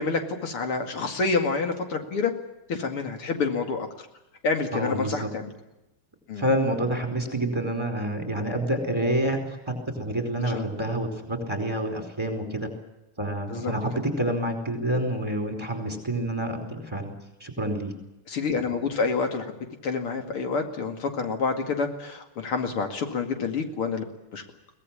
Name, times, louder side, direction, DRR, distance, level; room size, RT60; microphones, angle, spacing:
voice 1, 0.0-2.3 2.7-3.9 4.4-5.5 6.3-6.5 10.5-10.6 13.5-13.7 18.3-19.5 19.8-24.0 24.3-24.4, left 4 dB, 80° left, 5 dB, 3.2 m, -28 dB
voice 2, 4.7-5.3 6.4-12.7 13.2-17.1 17.4-17.9, right 1 dB, 10° right, 4 dB, 4.5 m, -28 dB
23.0 x 18.5 x 8.8 m, 0.95 s
omnidirectional pair, 2.4 m